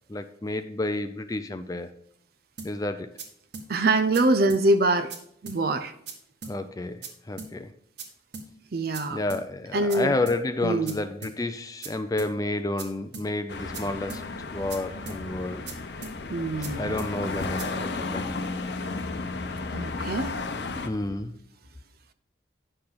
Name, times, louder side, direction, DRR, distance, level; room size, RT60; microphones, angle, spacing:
voice 1, 0.1-1.9 2.6-3.1 6.4-7.7 9.1-15.7 16.8-18.3 20.9-21.3, left 2 dB, 20° left, 0.5 m, -30 dB
sound 1, 2.6-2.7 3.2-3.3 3.5-3.7 4.1-4.2 4.5-4.6 5.1-5.2 5.5-5.6 6.1-6.2 6.4-6.6 7.0-7.1 7.4-7.5 8.0-8.1 8.3-8.5 8.9-9.0 9.3-9.4 9.9-10.0 10.3-10.4 10.9-11.0 11.2-11.4 11.8-11.9 12.2-12.3 12.8-12.9 13.1-13.3 13.7-13.8 14.1-14.2 14.7-14.8 15.1-15.2 15.7-15.8 16.0-16.2 16.6-16.7 17.0-17.1 17.6-17.7, right 4 dB, 75° right, 1.7 m, -39 dB
voice 2, 3.7-5.1 5.4-5.9 8.7-9.2 9.7-10.1 10.6-11.0 16.3-17.0 19.7-20.3, right 2 dB, 55° right, 0.6 m, -24 dB
sound 2, 13.5-20.9, left 3 dB, 65° left, 0.8 m, -33 dB
9.9 x 6.7 x 3.9 m
head